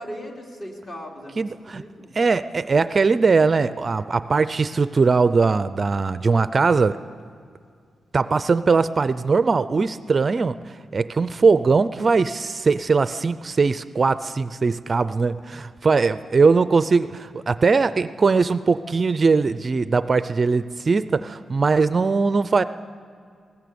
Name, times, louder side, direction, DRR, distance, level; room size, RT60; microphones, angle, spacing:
voice 1, 0.0-2.1 16.4-16.7, equal, 40° left, 0 dB, 3.1 m, -38 dB
voice 2, 1.4-1.8 2.1-7.0 8.1-10.6 10.9-22.6, right 4 dB, 35° right, 13 dB, 0.4 m, -20 dB
21.0 x 18.0 x 6.9 m, 2.2 s
wide cardioid pair, 145°, 0 cm